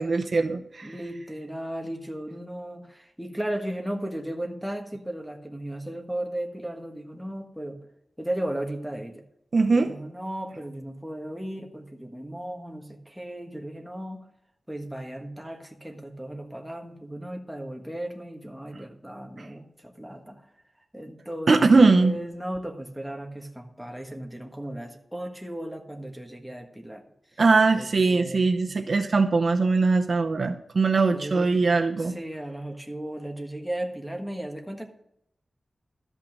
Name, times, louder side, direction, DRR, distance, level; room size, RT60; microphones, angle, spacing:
voice 1, 0.0-0.9 9.5-9.9 19.4-19.5 21.5-22.2 27.4-32.2, right 3 dB, 55° right, 5 dB, 0.8 m, -21 dB
voice 2, 0.8-7.8 8.2-9.2 9.7-14.3 14.7-20.5 20.9-27.0 27.3-27.4 27.8-28.4 31.1-34.9, right 1 dB, 5° right, 3 dB, 1.5 m, -36 dB
13.0 x 5.6 x 6.1 m, 0.76 s
wide cardioid pair, 100°, 0 cm